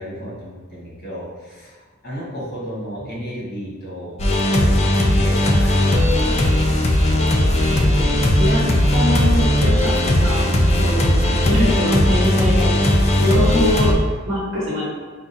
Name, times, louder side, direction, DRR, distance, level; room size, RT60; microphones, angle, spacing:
voice 1, 0.0-4.1 4.5-4.8 5.2-6.5 11.2-11.5, equal, 50° left, -6 dB, 1.3 m, -33 dB
sound 1, 4.2-13.9, left 1 dB, 30° left, 0.4 m, -17 dB
voice 2, 7.4-8.0 8.3-8.6 8.9-10.5 10.8-12.7 13.2-13.9 14.3-14.8, left 1 dB, 85° right, -6 dB, 1.0 m, -23 dB
4.9 x 2.4 x 2.6 m, 1.5 s
head